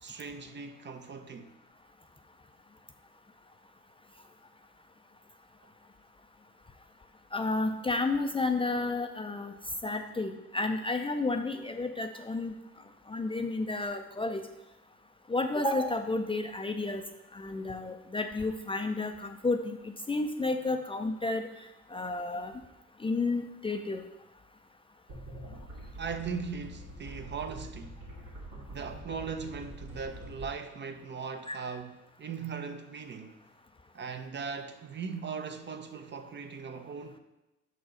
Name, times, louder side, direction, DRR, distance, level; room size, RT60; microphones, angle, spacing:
voice 1, 0.0-1.5 26.0-28.0 28.7-33.4 33.9-37.2, right 5 dB, 40° right, 0.5 m, -39 dB
voice 2, 7.3-9.5 9.8-12.5 13.1-14.4 15.3-17.0 17.3-21.5 21.9-22.5 23.0-24.0 31.5-31.6, left 3 dB, 20° left, 0.4 m, -31 dB
sound 1, 25.1-30.5, right 1 dB, 85° right, 1.9 m, -45 dB
5.7 x 4.1 x 5.0 m
cardioid pair, 90°, 30 cm